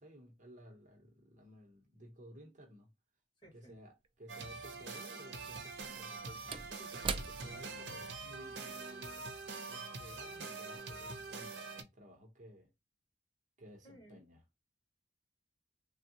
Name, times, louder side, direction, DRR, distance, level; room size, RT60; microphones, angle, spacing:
voice 1, 0.0-2.9 3.5-9.3 9.7-12.7 13.6-14.4, equal, 45° right, 0.9 m, -56 dB
voice 2, 3.4-3.8 13.8-14.2, equal, 25° left, 1.9 m, -57 dB
Slam / Wood, 4.0-4.1 5.6-10.3 10.6-10.8, right 5 dB, 30° right, 0.3 m, -45 dB
sound 1, 4.3-11.8, right 4 dB, 85° right, 0.7 m, -45 dB
3.4 x 2.2 x 2.7 m
head